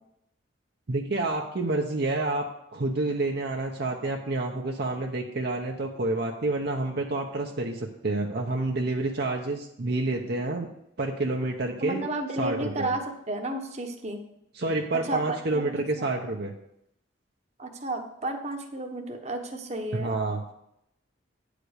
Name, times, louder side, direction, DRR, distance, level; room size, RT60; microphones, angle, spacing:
voice 1, 0.9-2.4 2.7-10.7 11.0-12.0 12.4-12.9 14.5-16.5 19.9-20.4, right 2 dB, 55° right, 1 dB, 0.8 m, -28 dB
voice 2, 11.8-14.2 15.0-16.1 17.6-20.1, right 2 dB, 35° right, 3 dB, 1.0 m, -32 dB
9.9 x 5.1 x 6.5 m, 0.78 s
head